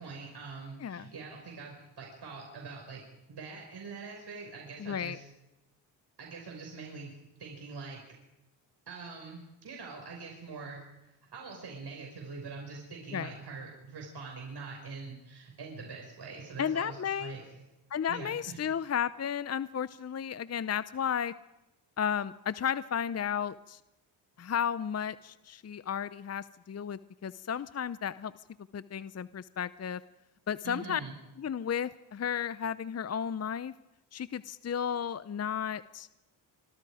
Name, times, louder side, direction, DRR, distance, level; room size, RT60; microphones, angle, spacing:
voice 1, 0.0-3.0 3.3-5.3 6.2-7.1 7.4-8.0 8.9-17.4 18.1-18.6 30.6-31.1, right 4 dB, 55° right, 0 dB, 6.0 m, -44 dB
voice 2, 0.8-1.1 4.8-5.2 13.1-13.3 16.6-17.3 17.9-21.3 22.0-23.8 24.4-28.3 28.7-30.0 30.5-31.0 31.4-33.7 34.1-36.1, left 8 dB, 30° left, 16 dB, 0.8 m, -33 dB
25.5 x 25.5 x 5.0 m, 0.95 s
supercardioid pair, 60°, 49 cm